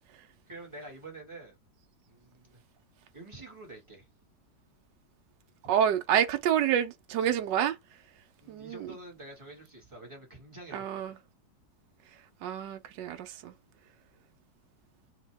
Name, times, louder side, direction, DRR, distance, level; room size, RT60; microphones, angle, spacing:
voice 1, 0.5-1.6 2.1-2.6 3.1-4.1 5.6-5.8 8.4-11.2, right 2 dB, 15° right, 1.8 m, -47 dB
voice 2, 5.7-7.8 8.5-8.9 10.7-11.1 12.4-13.5, right 9 dB, 80° right, 1.3 m, -28 dB
3.5 x 2.9 x 3.4 m
omnidirectional pair, 1.9 m